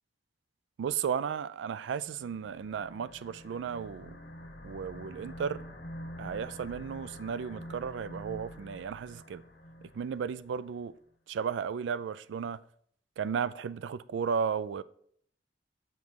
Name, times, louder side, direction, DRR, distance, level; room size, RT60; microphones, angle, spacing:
voice 1, 0.8-4.2 4.6-5.6 6.2-9.4 9.9-10.9 11.3-12.6 13.2-14.8, right 7 dB, 80° right, 0.3 m, -34 dB
sound 1, 2.0-10.6, left 1 dB, 55° left, 0.9 m, -47 dB
7.3 x 4.0 x 4.6 m
head